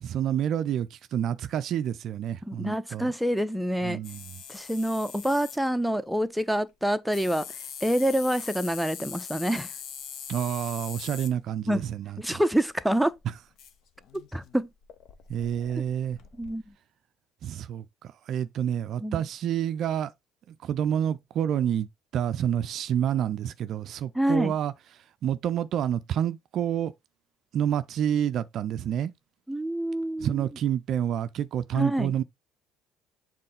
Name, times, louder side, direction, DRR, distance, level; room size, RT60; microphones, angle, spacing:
voice 1, 0.0-3.1 3.8-4.4 10.3-12.4 13.3-13.4 15.3-16.2 17.4-20.1 20.5-21.9 22.1-26.9 27.5-29.1 30.2-32.2, right 9 dB, 50° right, 0.4 m, -28 dB
voice 2, 2.4-4.0 4.5-7.5 7.8-9.7 11.7-11.8 12.2-13.1 14.3-14.7 16.4-16.6 19.0-19.2 24.1-24.5 29.5-30.4 31.7-32.1, equal, ahead, 0.5 m, -26 dB
sound 1, 4.0-5.6 7.1-11.3 12.6-12.7 12.9-16.7, left 7 dB, 55° left, 0.7 m, -42 dB
7.5 x 3.6 x 3.4 m
figure-of-eight pair, 55°, 0 cm